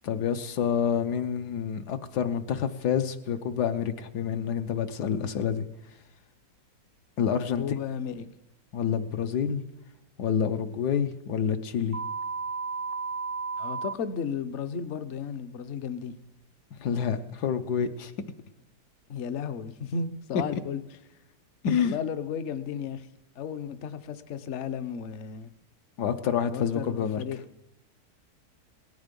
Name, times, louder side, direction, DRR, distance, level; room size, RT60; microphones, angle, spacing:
voice 1, 0.0-5.6 7.2-7.6 8.7-9.6 10.2-12.0 16.8-18.1 21.6-21.9 26.0-27.2, left 7 dB, 70° left, 8 dB, 1.4 m, -28 dB
voice 2, 7.6-8.2 13.6-16.1 19.1-20.8 21.8-23.1 23.4-25.5 26.5-27.4, left 7 dB, 55° left, 10 dB, 0.9 m, -34 dB
sound 1, 11.9-13.9, right 4 dB, 35° right, 0.6 m, -33 dB
17.5 x 13.5 x 5.3 m, 0.89 s
omnidirectional pair, 1.9 m